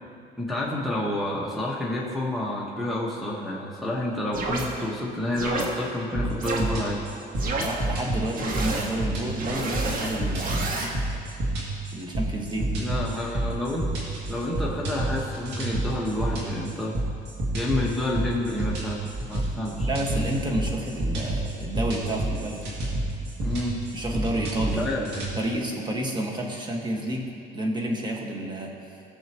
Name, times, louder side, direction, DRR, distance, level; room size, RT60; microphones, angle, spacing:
voice 1, 0.4-7.0 12.8-13.9 14.3-17.0 17.5-19.9 23.4-23.9 24.8-25.0, left 1 dB, ahead, -5 dB, 1.4 m, -29 dB
sound 1, 4.3-4.7 5.3-5.7 6.4-6.6 7.3-7.7 8.3-8.9 9.3-10.9, right 3 dB, 55° right, 1.6 m, -30 dB
sound 2, 6.2-25.3, right 1 dB, 85° right, 2.4 m, -29 dB
voice 2, 7.6-10.8 11.9-12.7 19.9-22.6 23.9-27.3 27.5-28.7, right 1 dB, 25° right, 0 dB, 1.7 m, -30 dB
17.5 x 6.8 x 3.1 m, 2.5 s
cardioid pair, 110°, 17 cm